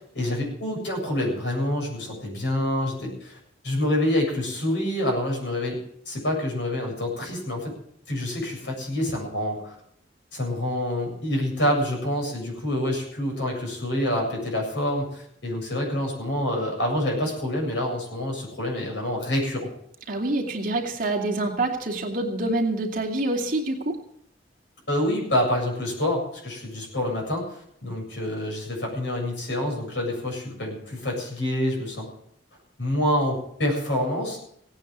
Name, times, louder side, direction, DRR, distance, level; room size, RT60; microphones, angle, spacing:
voice 1, 0.1-3.4 3.6-5.8 6.1-7.7 8.1-9.7 10.3-19.7 24.9-32.1 32.8-34.4, left 1 dB, 70° left, 0 dB, 7.6 m, -27 dB
voice 2, 20.1-24.0, right 2 dB, 50° right, 1 dB, 2.6 m, -26 dB
17.5 x 9.4 x 7.3 m, 0.70 s
head